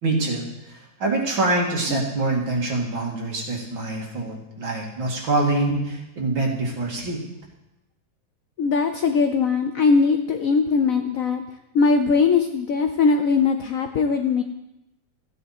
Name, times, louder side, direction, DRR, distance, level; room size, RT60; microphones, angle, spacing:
voice 1, 0.0-7.2, right 2 dB, 80° right, -1 dB, 3.1 m, -25 dB
voice 2, 8.6-11.4 11.7-14.4, left 5 dB, 65° left, 6 dB, 0.8 m, -20 dB
15.0 x 9.2 x 4.3 m, 0.89 s
omnidirectional pair, 2.1 m